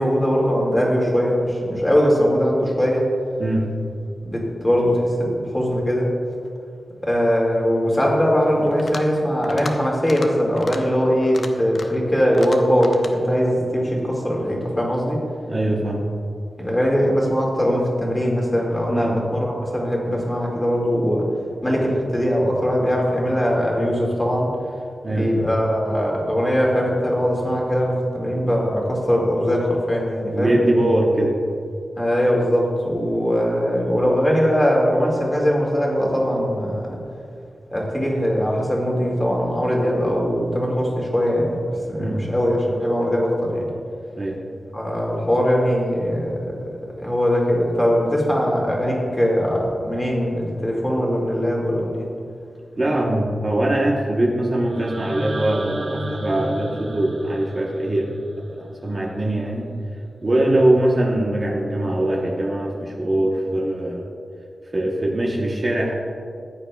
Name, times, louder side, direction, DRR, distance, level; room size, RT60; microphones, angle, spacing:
voice 1, 0.0-3.0 4.2-6.1 7.0-15.2 16.6-21.3 21.6-24.5 25.1-30.5 32.0-37.0 37.7-43.7 44.7-52.1, equal, 10° left, -2 dB, 1.9 m, -21 dB
sound 1, 8.7-9.1 9.4-9.7 10.0-10.3 10.6-10.8 11.2-12.0 12.3-13.1, left 3 dB, 55° left, 0.7 m, -35 dB
voice 2, 15.5-16.1 18.9-19.2 25.0-25.5 30.3-31.3 42.0-42.2 44.2-44.4 52.8-58.1 58.5-59.7 60.2-64.1 64.7-65.9, right 1 dB, 30° right, -2 dB, 0.9 m, -22 dB
sound 2, 54.7-58.7, right 1 dB, 85° right, 1.8 m, -33 dB
14.5 x 9.1 x 2.3 m, 2.5 s
wide cardioid pair, 125°, 0 cm